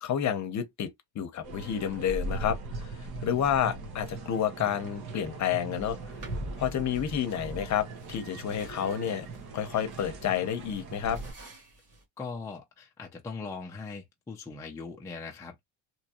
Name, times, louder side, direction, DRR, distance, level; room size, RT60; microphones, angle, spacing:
voice 1, 0.0-2.9 3.2-6.0 6.6-9.3 9.5-11.2, left 9 dB, 40° left, 0.8 m, -30 dB
sound 1, 1.4-11.3, right 3 dB, 55° right, 1.3 m, -40 dB
sound 2, 5.8-12.0, right 1 dB, 35° right, 1.8 m, -44 dB
voice 2, 12.2-15.6, left 4 dB, 10° left, 0.4 m, -40 dB
3.5 x 3.0 x 2.9 m
cardioid pair, 180°, 44 cm